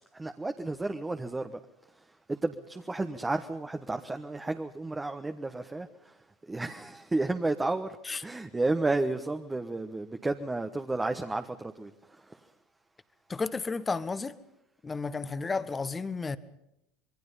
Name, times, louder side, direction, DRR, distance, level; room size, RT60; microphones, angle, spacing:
voice 1, 0.1-1.6 2.3-6.2 6.4-8.0 8.2-12.4, right 2 dB, 15° right, 1.2 m, -32 dB
voice 2, 13.3-14.3 14.8-16.4, left 4 dB, 20° left, 1.3 m, -32 dB
26.0 x 21.5 x 5.6 m
hypercardioid pair, 85°, 0 cm